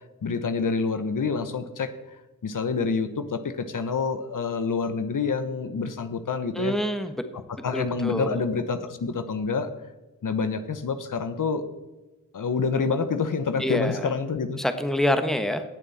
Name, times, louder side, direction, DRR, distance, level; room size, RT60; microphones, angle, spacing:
voice 1, 0.2-1.9 2.4-6.7 7.6-9.7 10.2-11.6 12.3-14.6, left 5 dB, 65° left, 9 dB, 1.1 m, -27 dB
voice 2, 6.5-7.2 7.7-8.4 13.6-14.1 14.6-15.6, equal, ahead, 8 dB, 1.3 m, -26 dB
18.5 x 7.2 x 4.3 m, 1.1 s
cardioid pair, 60°, 34 cm